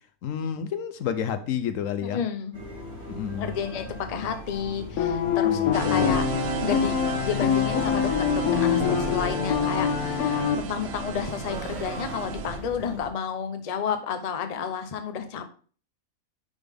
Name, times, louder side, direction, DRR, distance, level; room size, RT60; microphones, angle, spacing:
voice 1, 0.2-2.2 3.1-3.5 5.4-6.1, left 8 dB, 70° left, 10 dB, 0.9 m, -30 dB
voice 2, 2.1-2.6 3.4-6.2 6.6-6.9 7.2-15.5, left 7 dB, 40° left, 7 dB, 0.6 m, -31 dB
sound 1, 2.5-13.1, equal, 45° right, 2.3 m, -39 dB
sound 2, 5.0-10.6, left 9 dB, 90° left, 1.2 m, -25 dB
sound 3, 5.7-12.6, right 8 dB, 75° right, 1.1 m, -33 dB
10.0 x 3.6 x 3.5 m, 0.41 s
omnidirectional pair, 1.5 m